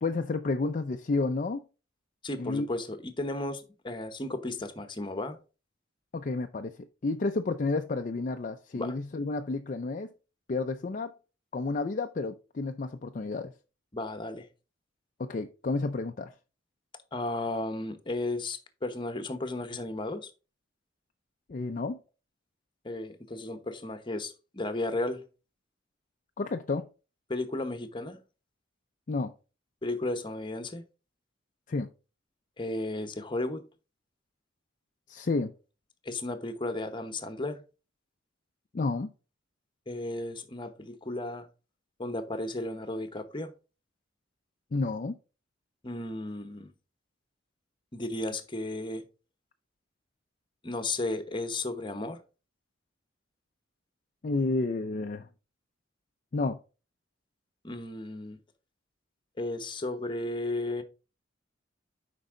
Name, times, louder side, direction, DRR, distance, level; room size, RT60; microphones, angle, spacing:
voice 1, 0.0-1.6 2.4-2.7 6.1-10.1 10.5-11.1 11.5-13.5 15.2-16.3 21.5-22.0 26.4-26.9 29.1-29.3 31.7-31.9 35.1-35.5 38.7-39.1 44.7-45.2 54.2-55.3 56.3-56.6, left 3 dB, 40° left, 0.5 m, -31 dB
voice 2, 2.2-5.4 8.7-9.0 13.9-14.5 17.1-20.3 22.8-25.2 27.3-28.2 29.8-30.8 32.6-33.7 36.0-37.6 39.9-41.5 42.0-43.5 45.8-46.7 47.9-49.0 50.6-52.2 57.6-58.4 59.4-60.8, left 2 dB, 25° left, 1.0 m, -34 dB
8.2 x 5.3 x 3.8 m
head